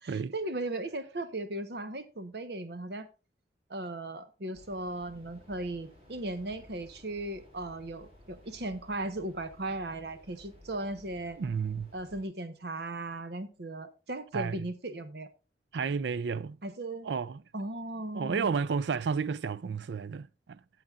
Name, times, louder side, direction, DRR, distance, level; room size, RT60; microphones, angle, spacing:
voice 1, 0.0-3.1 3.7-11.4 11.9-15.3 16.6-17.1 17.5-18.5, right 2 dB, 65° right, 1.1 m, -37 dB
sound 1, 4.5-12.2, left 1 dB, 35° right, 3.7 m, -56 dB
voice 2, 11.4-11.9 14.3-14.7 15.7-16.6 17.0-17.4 18.1-20.6, right 5 dB, 80° right, 0.4 m, -32 dB
14.0 x 7.7 x 2.4 m
head